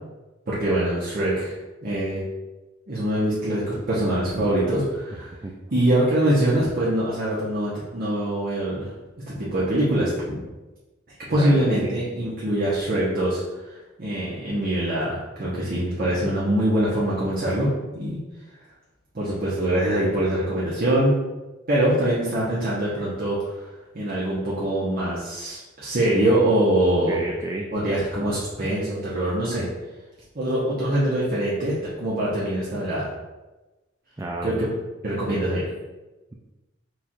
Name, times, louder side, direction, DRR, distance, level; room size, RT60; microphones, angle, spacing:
voice 1, 0.5-1.5 1.8-2.2 2.9-5.3 5.7-8.9 9.3-10.4 11.3-13.4 14.0-17.7 17.9-18.2 19.1-21.1 21.7-23.5 23.9-27.2 27.7-29.7 30.3-33.1 34.4-34.7 35.0-35.6, right 1 dB, 50° right, -9 dB, 1.0 m, -23 dB
voice 2, 5.1-5.6 11.3-12.0 27.1-27.7 34.2-34.6, right 2 dB, 15° right, 0 dB, 0.3 m, -32 dB
4.5 x 2.4 x 4.3 m, 1.1 s
head